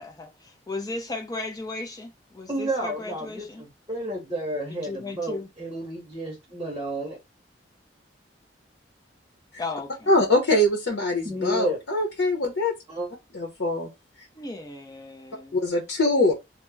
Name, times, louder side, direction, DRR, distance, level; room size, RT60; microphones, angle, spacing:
voice 1, 0.0-3.6 4.8-5.5 9.6-10.1 14.4-15.6, left 3 dB, 20° left, 0.6 m, -36 dB
voice 2, 2.5-7.2 11.2-11.8 12.9-13.1, right 1 dB, 20° right, 0.8 m, -31 dB
voice 3, 10.1-12.7 13.3-13.9 14.2-14.3 15.5-16.3, left 1 dB, 90° left, 0.8 m, -23 dB
2.8 x 2.1 x 3.3 m
head